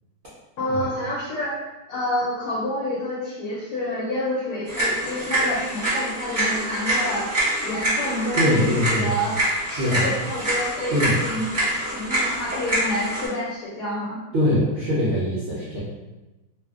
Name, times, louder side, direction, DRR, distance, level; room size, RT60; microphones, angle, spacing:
voice 1, 0.6-1.5 1.9-7.3 7.6-9.3 9.7-14.2, left 1 dB, 75° left, -6 dB, 1.1 m, -28 dB
sound 1, 4.7-13.3, right 1 dB, 25° right, 1.0 m, -26 dB
voice 2, 8.4-9.2 9.6-10.1 10.9-11.2 14.3-15.8, left 1 dB, 70° right, -9 dB, 0.6 m, -22 dB
2.6 x 2.6 x 2.3 m, 1.1 s
omnidirectional pair, 2.0 m